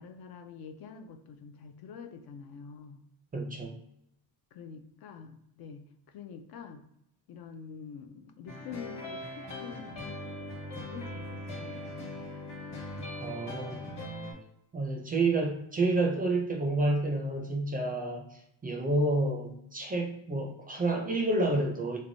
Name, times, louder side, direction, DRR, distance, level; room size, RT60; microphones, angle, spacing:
voice 1, 0.0-3.0 4.5-5.8 6.1-6.8 7.3-10.3 10.9-12.2 13.2-13.4, left 6 dB, 65° left, 7 dB, 0.5 m, -46 dB
voice 2, 3.3-3.7 13.2-13.8 14.7-18.3 18.6-22.0, right 2 dB, 20° right, 1 dB, 0.4 m, -29 dB
sound 1, 8.5-14.3, left 1 dB, 45° left, 1.3 m, -40 dB
3.3 x 3.2 x 2.6 m, 0.77 s
cardioid pair, 155°, 40 cm